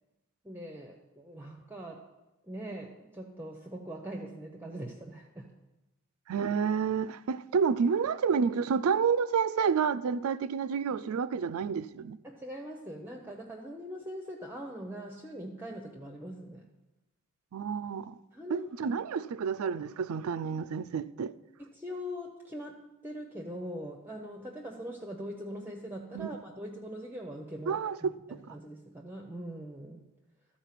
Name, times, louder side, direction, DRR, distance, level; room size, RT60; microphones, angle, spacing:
voice 1, 0.4-2.0 2.4-5.5 12.2-16.7 18.3-18.7 21.6-30.0, equal, 10° right, 0.6 m, -42 dB
voice 2, 6.3-12.2 17.5-18.1 18.5-21.3 26.1-26.3 27.7-28.5, right 6 dB, 85° right, 0.4 m, -29 dB
13.0 x 4.4 x 5.8 m
head